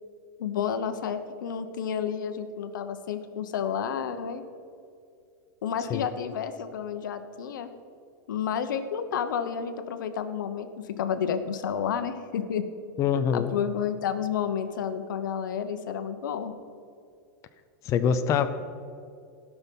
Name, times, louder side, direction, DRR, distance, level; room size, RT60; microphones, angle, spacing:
voice 1, 0.4-4.4 5.6-7.7 8.3-12.7 13.3-16.5, left 8 dB, 85° left, 9 dB, 1.0 m, -30 dB
voice 2, 13.0-13.5 17.8-18.5, left 7 dB, 30° left, 9 dB, 0.6 m, -24 dB
16.5 x 6.1 x 5.4 m, 2.4 s
supercardioid pair, 140°, 10 cm